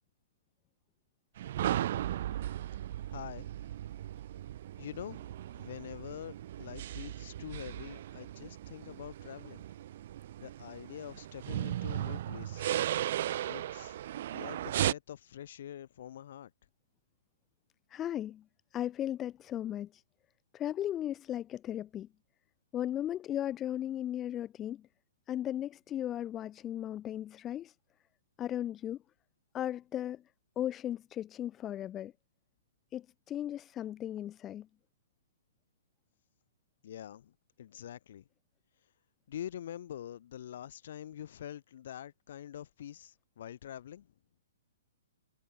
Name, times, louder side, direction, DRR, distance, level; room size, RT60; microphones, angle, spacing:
sound 1, 1.4-14.9, right 12 dB, 50° right, 1.3 m, -36 dB
voice 1, 3.1-3.7 4.8-9.6 10.4-12.8 13.5-14.0 14.3-16.5 36.8-38.3 39.3-44.1, left 10 dB, 55° left, 3.8 m, -45 dB
voice 2, 17.9-18.4 18.7-20.0 20.5-22.1 22.7-24.8 25.3-27.7 28.4-29.0 29.5-30.2 30.6-32.1 32.9-34.7, left 11 dB, 20° left, 0.4 m, -36 dB
figure-of-eight pair, 125°, 0 cm